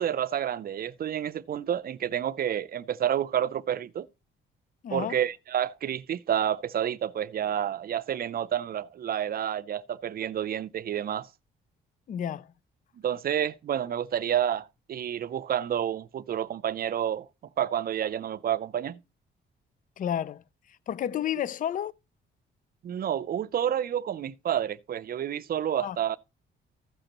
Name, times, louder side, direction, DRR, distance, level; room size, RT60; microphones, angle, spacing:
voice 1, 0.0-4.1 4.9-11.3 13.0-17.3 17.6-19.0 22.8-26.2, right 10 dB, 50° right, 0.5 m, -29 dB
voice 2, 4.8-5.2 12.1-12.5 20.0-20.4 20.9-21.9 25.8-26.0, left 10 dB, 40° left, 0.4 m, -31 dB
15.0 x 6.5 x 2.9 m
cardioid pair, 90°, 20 cm